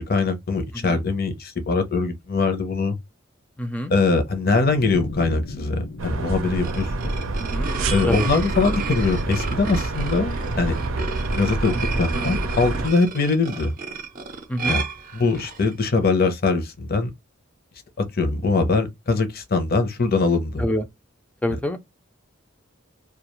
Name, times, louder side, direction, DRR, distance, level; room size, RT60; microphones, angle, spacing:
voice 1, 0.0-2.9 3.9-7.1 7.9-10.8 11.3-13.7 14.7-14.8 15.1-17.1 18.0-20.6, left 3 dB, 50° left, 0.7 m, -22 dB
voice 2, 3.6-3.9 7.4-7.7 8.1-8.3 11.7-12.0 14.5-14.8 20.6-20.9 21.4-21.8, equal, 5° left, 0.4 m, -27 dB
sound 1, 4.4-7.7, left 3 dB, 85° left, 0.6 m, -37 dB
sound 2, 6.0-12.9, right 2 dB, 85° right, 0.6 m, -27 dB
sound 3, 6.4-15.7, right 4 dB, 45° right, 0.6 m, -32 dB
2.3 x 2.3 x 2.9 m
head